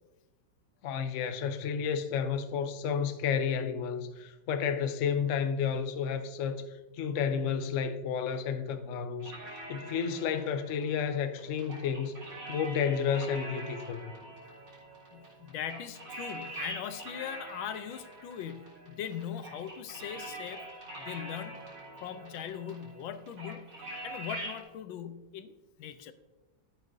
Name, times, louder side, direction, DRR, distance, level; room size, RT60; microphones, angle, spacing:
voice 1, 0.8-6.6 7.0-14.1, left 7 dB, 65° left, 0.7 m, -31 dB
sound 1, 9.2-24.6, right 1 dB, 80° right, 4.7 m, -44 dB
voice 2, 15.1-20.6 21.0-21.7 22.0-26.1, left 9 dB, 85° left, 1.4 m, -40 dB
14.5 x 8.4 x 2.7 m
omnidirectional pair, 2.1 m